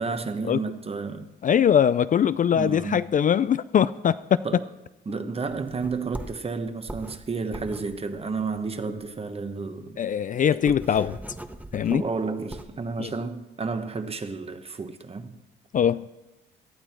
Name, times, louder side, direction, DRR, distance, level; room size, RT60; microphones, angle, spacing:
voice 1, 0.0-1.3 2.5-3.1 4.4-4.7 5.1-10.0 10.7-11.0 11.9-15.4, right 4 dB, 30° right, 1.3 m, -31 dB
voice 2, 1.4-4.4 10.0-11.1 11.7-12.0 13.0-13.1 15.7-16.1, left 8 dB, 40° left, 0.4 m, -22 dB
sound 1, 5.7-9.2 9.5-9.6 9.9-10.0 10.3-12.9, right 1 dB, 10° right, 0.9 m, -40 dB
18.0 x 12.5 x 4.5 m
cardioid pair, 90°, 20 cm